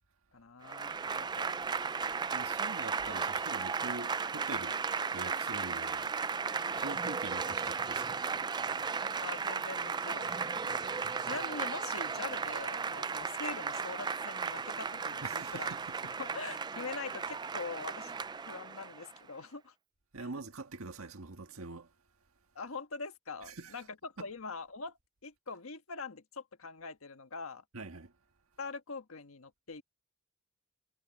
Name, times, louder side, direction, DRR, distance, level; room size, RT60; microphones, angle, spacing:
voice 1, 0.3-1.5 9.2-11.0 11.2-15.7 16.2-18.1 18.5-19.7 20.2-20.3 22.5-27.6 28.6-29.8, left 4 dB, 80° left, 1.4 m, -43 dB
Applause / Crowd, 0.6-19.2, right 5 dB, 20° right, 0.4 m, -35 dB
voice 2, 2.3-4.8 5.1-6.1 6.8-8.3 15.2-15.8 20.1-21.9 23.5-23.7 27.7-28.1, right 3 dB, 85° right, 1.6 m, -44 dB
head